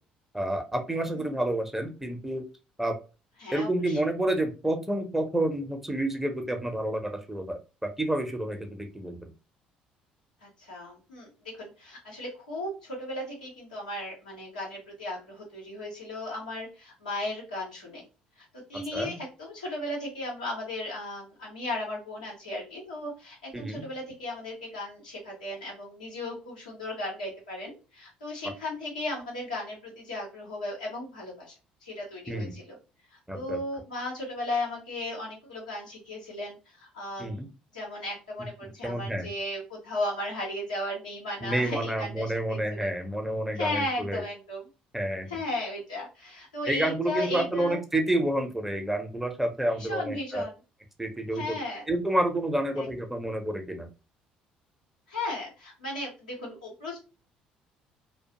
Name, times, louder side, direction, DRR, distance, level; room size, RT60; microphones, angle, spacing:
voice 1, 0.3-2.4 2.8-2.9 3.5-9.3 18.9-19.2 23.5-23.9 32.3-32.6 33.3-33.6 37.2-37.5 38.8-39.3 41.4-44.2 44.9-45.3 46.7-50.4 51.0-51.6 51.9-53.9, right 1 dB, 5° right, 4 dB, 0.7 m, -29 dB
voice 2, 3.4-4.0 10.4-11.3 11.6-18.0 18.7-31.5 31.8-32.8 33.3-37.4 37.7-42.9 43.5-44.6 45.3-47.8 49.8-50.5 51.3-51.8 52.8-52.9 55.1-57.0, left 1 dB, 85° left, -4 dB, 1.0 m, -36 dB
2.3 x 2.2 x 2.8 m, 0.31 s
figure-of-eight pair, 55°, 4 cm